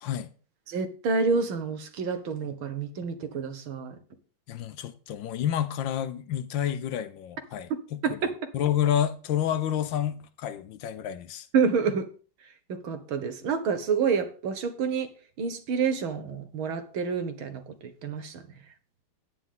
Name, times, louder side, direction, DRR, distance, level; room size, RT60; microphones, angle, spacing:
voice 1, 0.0-0.3 4.5-8.2 8.5-11.5, left 10 dB, 75° left, 1.4 m, -29 dB
voice 2, 0.7-4.0 8.0-8.3 11.5-12.1 12.7-15.1 15.4-17.6 18.0-18.4, right 5 dB, 80° right, 2.1 m, -28 dB
9.8 x 9.5 x 3.8 m
omnidirectional pair, 2.2 m